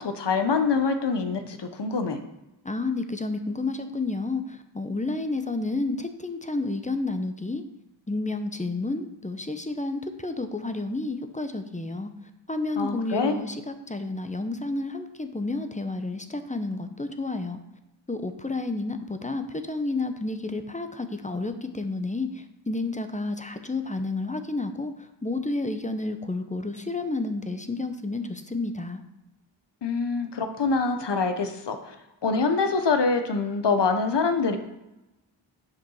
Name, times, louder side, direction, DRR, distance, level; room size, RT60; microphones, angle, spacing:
voice 1, 0.0-2.2 12.8-13.3 29.8-31.9 32.2-34.6, left 4 dB, 60° left, 7 dB, 1.1 m, -25 dB
voice 2, 2.6-7.6 8.1-12.1 12.5-17.6 18.1-29.0, left 2 dB, 15° left, 8 dB, 0.9 m, -30 dB
7.3 x 5.4 x 5.6 m, 0.96 s
cardioid pair, 45°, 48 cm